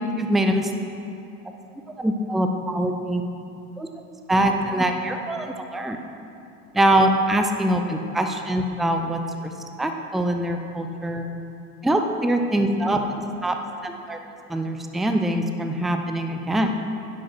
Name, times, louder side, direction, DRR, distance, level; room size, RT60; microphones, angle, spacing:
voice 1, 0.2-0.7 2.0-3.2 3.8-3.9 4.3-6.0 6.7-9.5 9.8-11.3 11.8-13.0 13.4-13.6 13.8-14.2 14.5-16.8, right 1 dB, ahead, 5 dB, 0.6 m, -23 dB
10.5 x 10.0 x 6.1 m, 2.7 s
figure-of-eight pair, 75°, 46 cm